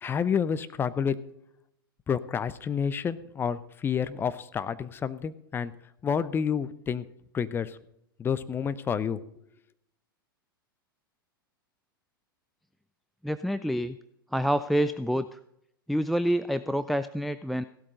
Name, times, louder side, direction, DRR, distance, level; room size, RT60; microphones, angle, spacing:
voice 1, 0.0-1.2 2.1-5.7 6.0-7.0 7.3-7.8 8.2-9.2, left 7 dB, 20° left, 13 dB, 0.7 m, -29 dB
voice 2, 13.2-14.0 14.3-15.4 15.9-17.6, equal, ahead, 12 dB, 0.4 m, -27 dB
16.0 x 12.5 x 3.9 m, 0.78 s
figure-of-eight pair, 95°, 12 cm